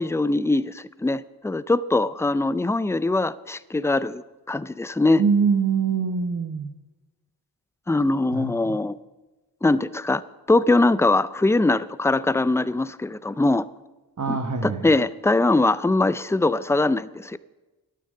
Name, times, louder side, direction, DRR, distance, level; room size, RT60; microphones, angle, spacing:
voice 1, 0.0-5.2 7.9-9.0 9.6-10.2 10.5-13.7 14.3-14.4 14.6-17.4, left 2 dB, 5° left, 16 dB, 0.4 m, -22 dB
voice 2, 5.2-6.7 8.3-8.8 14.2-14.9, right 5 dB, 40° right, 5 dB, 1.1 m, -24 dB
12.0 x 9.7 x 6.5 m, 1.1 s
cardioid pair, 55°, 43 cm